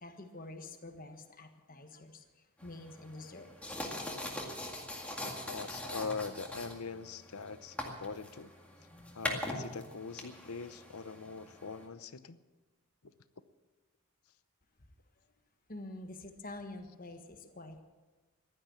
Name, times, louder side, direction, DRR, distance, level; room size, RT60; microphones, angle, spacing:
voice 1, 0.0-2.2 2.6-3.5 15.7-17.8, left 2 dB, 40° left, 6 dB, 1.4 m, -47 dB
sound 1, 2.6-11.8, left 1 dB, 5° left, 2.0 m, -42 dB
voice 2, 5.2-8.5 9.1-12.4 13.0-13.1, left 4 dB, 80° left, 13 dB, 0.8 m, -42 dB
16.0 x 12.0 x 7.1 m, 1.3 s
head